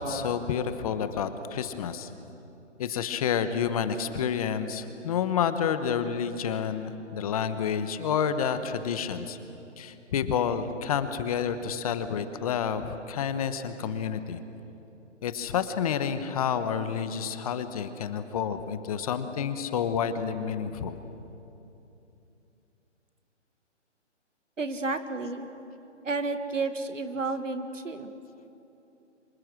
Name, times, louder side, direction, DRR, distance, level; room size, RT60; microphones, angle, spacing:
voice 1, 0.0-2.1 2.8-9.4 9.8-14.4 15.2-21.0, left 7 dB, 30° left, 11 dB, 1.1 m, -29 dB
voice 2, 24.6-25.5 26.0-28.1, right 3 dB, 90° right, 9 dB, 2.0 m, -31 dB
28.5 x 26.0 x 6.3 m, 2.9 s
hypercardioid pair, 150°, 37 cm